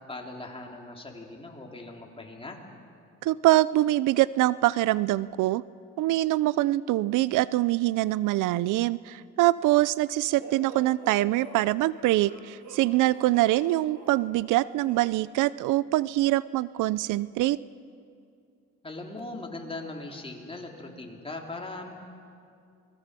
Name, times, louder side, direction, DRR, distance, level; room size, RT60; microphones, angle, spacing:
voice 1, 0.1-2.6 18.8-21.9, left 2 dB, 20° left, 0 dB, 3.5 m, -39 dB
voice 2, 3.2-5.6 6.0-17.6, right 16 dB, 85° right, 19 dB, 0.5 m, -24 dB
sound 1, 10.4-15.2, right 2 dB, 65° right, 8.0 m, -46 dB
27.0 x 20.0 x 6.8 m, 2.4 s
cardioid pair, 90°, 30 cm